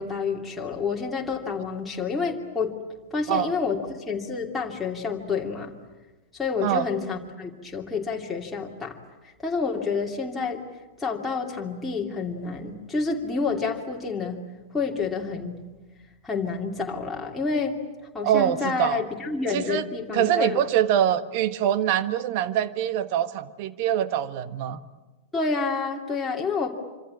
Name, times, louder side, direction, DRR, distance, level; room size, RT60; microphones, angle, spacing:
voice 1, 0.0-2.7 3.1-5.7 6.3-9.0 9.2-10.6 11.0-14.5 14.7-15.6 16.2-17.8 18.1-20.6 25.3-26.9, left 4 dB, 10° left, -2 dB, 2.8 m, -29 dB
voice 2, 18.2-19.0 19.5-19.8 20.1-24.8, right 10 dB, 45° right, 12 dB, 1.4 m, -24 dB
26.5 x 26.0 x 8.7 m, 1.2 s
figure-of-eight pair, 95°, 0 cm